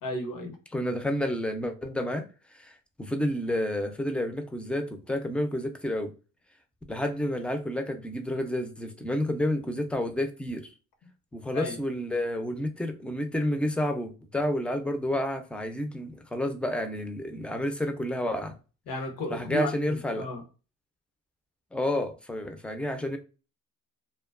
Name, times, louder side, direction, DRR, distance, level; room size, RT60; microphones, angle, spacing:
voice 1, 0.0-0.6 11.5-11.8 18.9-20.4, left 2 dB, 90° left, 0.8 m, -34 dB
voice 2, 0.7-2.3 2.6-6.1 6.9-10.7 11.3-18.6 19.3-20.3 21.7-23.2, left 1 dB, 5° left, 0.3 m, -30 dB
2.5 x 2.1 x 2.3 m
cardioid pair, 110°, 32 cm